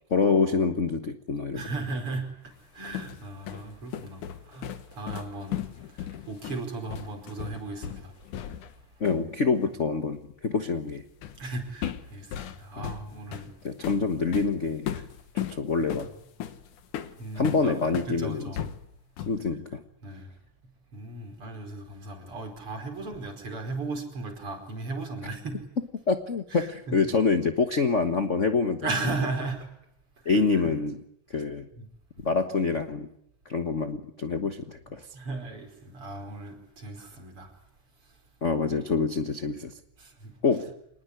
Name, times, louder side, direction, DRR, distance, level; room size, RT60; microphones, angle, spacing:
voice 1, 0.1-1.6 9.0-11.0 12.8-12.9 13.6-14.9 15.3-16.1 17.3-18.7 19.3-19.8 26.1-28.9 30.2-31.0 31.3-31.6 32.2-33.1 33.5-35.0 38.4-39.7 40.4-40.7, left 4 dB, 55° left, 8 dB, 0.8 m, -26 dB
voice 2, 1.5-8.1 11.4-13.5 14.9-15.0 17.2-17.7 18.1-18.6 20.0-20.3 20.9-25.7 26.5-27.0 28.8-29.7 30.5-30.6 31.8-31.9 35.1-37.5 40.0-40.3, right 3 dB, 45° right, 5 dB, 5.7 m, -36 dB
sound 1, 2.6-8.8 9.1-9.3 11.2-11.5 11.8-18.2 18.6-19.5, left 11 dB, 75° left, 2.9 m, -36 dB
27.0 x 20.0 x 9.9 m, 0.76 s
omnidirectional pair, 3.6 m